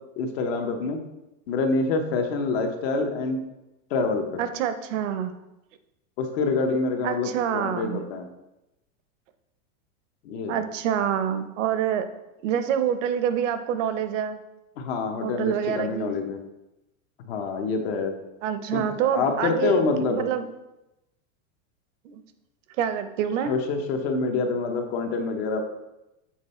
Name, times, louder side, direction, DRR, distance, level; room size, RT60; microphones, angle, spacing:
voice 1, 0.2-1.0 1.5-3.4 3.9-4.4 6.2-8.3 10.2-10.6 14.8-16.4 17.3-18.1 18.7-18.8 19.1-20.3 23.5-25.6, left 4 dB, 45° left, 5 dB, 0.9 m, -26 dB
voice 2, 4.4-5.3 7.0-8.0 10.5-12.1 12.4-14.4 15.2-16.1 18.4-20.5 22.0-22.2 22.8-23.5, right 9 dB, 60° right, 10 dB, 0.8 m, -27 dB
7.5 x 4.2 x 4.2 m, 0.94 s
supercardioid pair, 165°, 43 cm